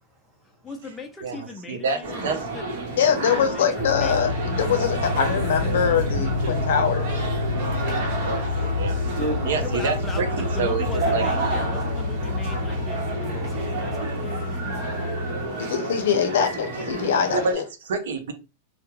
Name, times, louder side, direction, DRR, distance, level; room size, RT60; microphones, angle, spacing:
voice 1, 0.6-2.7 3.1-4.2 9.6-14.4 16.4-16.7, left 2 dB, 10° left, 0.3 m, -38 dB
voice 2, 1.2-2.0 2.2-2.4 5.7-5.8 8.2-8.4 8.8-9.0 9.4-10.9 11.1-11.2 17.3-18.3, right 4 dB, 80° right, 0.6 m, -27 dB
sound 1, 2.0-17.5, right 2 dB, 55° right, 0.9 m, -30 dB
voice 3, 3.0-7.1 15.6-17.6, left 7 dB, 80° left, 0.5 m, -23 dB
sound 2, 3.8-15.5, left 3 dB, 45° left, 0.7 m, -28 dB
voice 4, 7.9-8.3 9.1-9.5 13.3-15.0, right 1 dB, 15° right, 0.7 m, -36 dB
2.2 x 2.1 x 3.0 m
supercardioid pair, 160°, 0 cm